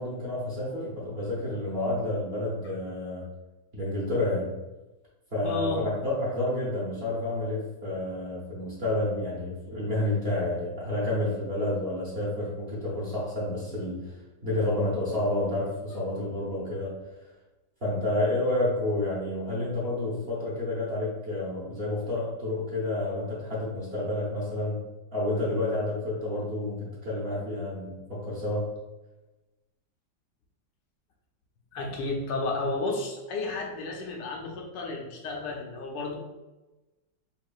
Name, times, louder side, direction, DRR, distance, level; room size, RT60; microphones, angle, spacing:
voice 1, 0.0-3.2 3.7-4.5 5.3-14.0 14.4-16.9 17.8-24.8 25.1-28.7, left 1 dB, 40° right, -6 dB, 1.0 m, -29 dB
voice 2, 5.4-5.8 31.7-36.1, left 3 dB, 75° left, 0 dB, 1.3 m, -32 dB
5.5 x 2.5 x 2.3 m, 1.1 s
omnidirectional pair, 2.0 m